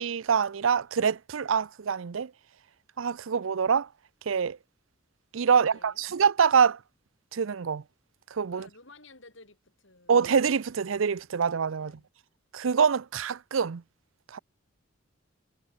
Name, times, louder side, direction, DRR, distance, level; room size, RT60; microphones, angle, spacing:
voice 1, 0.0-2.3 3.0-3.9 4.3-4.6 5.3-6.8 7.3-7.8 8.3-8.7 10.1-12.0 12.5-13.8 14.3-14.4, right 6 dB, 80° right, 0.5 m, -25 dB
voice 2, 5.5-6.0 8.5-10.3 11.8-12.1, left 2 dB, 70° left, 7.6 m, -53 dB
head